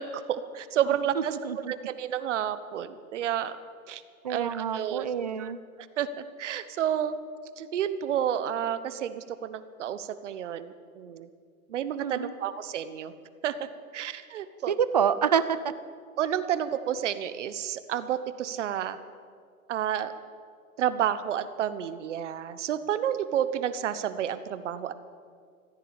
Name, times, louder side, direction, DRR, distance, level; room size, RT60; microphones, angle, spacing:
voice 1, 0.0-1.4 1.7-3.6 3.9-4.0 4.3-5.1 5.4-5.5 6.0-6.1 6.4-7.2 7.6-11.3 11.7-13.1 13.4-13.7 13.9-14.7 16.2-19.0 19.7-20.1 20.8-24.9, right 10 dB, 55° right, 13 dB, 1.1 m, -30 dB
voice 2, 1.1-1.7 4.2-5.6 12.0-12.3 14.7-15.6, right 7 dB, 30° right, 14 dB, 0.4 m, -27 dB
15.0 x 10.5 x 8.8 m, 2.1 s
hypercardioid pair, 160°, 43 cm